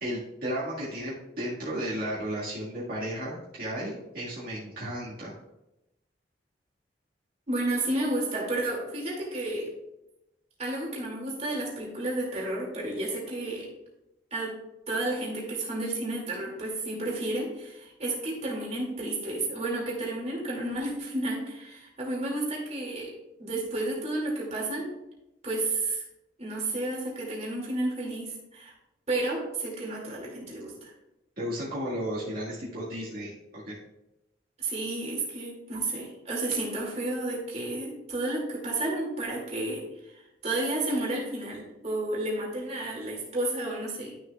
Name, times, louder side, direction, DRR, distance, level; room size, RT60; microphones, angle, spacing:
voice 1, 0.0-5.3 31.4-33.8, equal, 55° right, -9 dB, 1.9 m, -34 dB
voice 2, 7.5-9.7 10.6-13.7 14.3-14.5 14.9-23.1 23.4-24.9 25.4-26.0 26.4-28.7 29.1-30.9 34.6-40.1 40.4-44.2, right 2 dB, 40° right, -3 dB, 2.4 m, -31 dB
12.0 x 6.5 x 2.4 m, 0.92 s
head